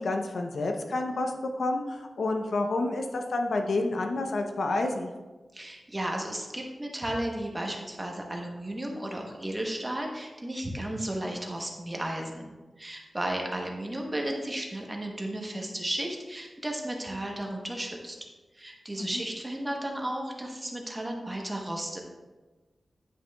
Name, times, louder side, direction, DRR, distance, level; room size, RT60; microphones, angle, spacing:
voice 1, 0.0-1.3 1.6-5.1 19.0-19.2, left 2 dB, 75° left, 3 dB, 0.6 m, -29 dB
voice 2, 5.5-12.5 12.8-18.2 18.5-22.0, right 1 dB, 20° right, 1 dB, 0.9 m, -34 dB
9.7 x 5.8 x 2.3 m, 1.2 s
wide cardioid pair, 135°, 0 cm